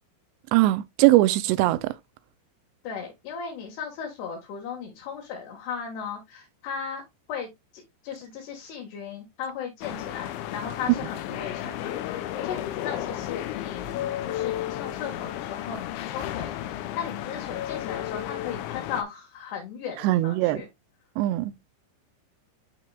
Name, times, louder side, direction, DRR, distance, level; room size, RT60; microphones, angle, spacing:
voice 1, 0.5-1.9 20.0-20.6 21.2-21.5, right 17 dB, 85° right, 2.6 m, -21 dB
voice 2, 2.8-7.0 7.3-13.9 14.2-20.7, left 7 dB, 70° left, 3.6 m, -36 dB
sound 1, 9.8-19.0, left 12 dB, 90° left, 3.2 m, -33 dB
12.5 x 4.9 x 2.3 m
omnidirectional pair, 5.1 m